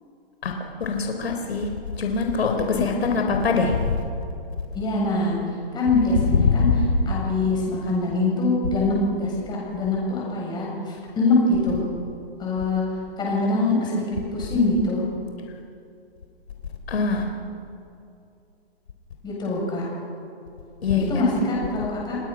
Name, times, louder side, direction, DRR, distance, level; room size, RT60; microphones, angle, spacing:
voice 1, 0.8-1.7 2.0-4.0 6.5-6.6 16.9-17.2 20.8-21.1, left 5 dB, 75° left, 3 dB, 4.0 m, -23 dB
voice 2, 2.7-3.2 4.7-5.4 5.7-11.8 12.4-12.8 13.2-15.0 19.2-19.8 21.0-22.2, left 2 dB, 15° left, -4 dB, 8.0 m, -24 dB
30.0 x 19.5 x 6.3 m, 2.6 s
hypercardioid pair, 150°, 31 cm